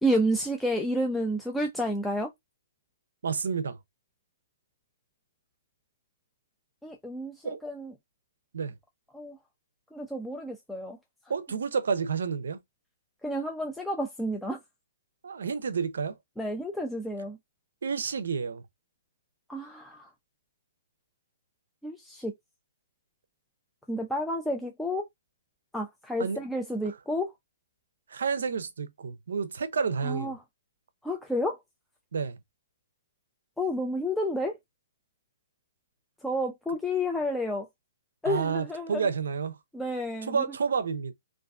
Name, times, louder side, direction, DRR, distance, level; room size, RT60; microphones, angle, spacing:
voice 1, 0.0-2.3 6.8-7.9 9.1-9.4 9.9-11.0 13.2-14.6 16.4-17.4 19.5-20.1 21.8-22.3 23.9-25.1 25.7-27.3 30.0-30.4 31.0-31.6 33.6-34.6 36.2-37.7 38.2-39.0 39.7-40.4, equal, 5° left, 0.3 m, -30 dB
voice 2, 3.2-3.8 7.4-7.6 8.5-8.7 11.3-12.6 15.2-16.2 17.8-18.6 26.2-26.4 28.1-30.3 32.1-32.4 38.2-39.6 40.3-41.1, right 5 dB, 75° right, 0.5 m, -30 dB
2.4 x 2.2 x 2.4 m
hypercardioid pair, 135°, 0 cm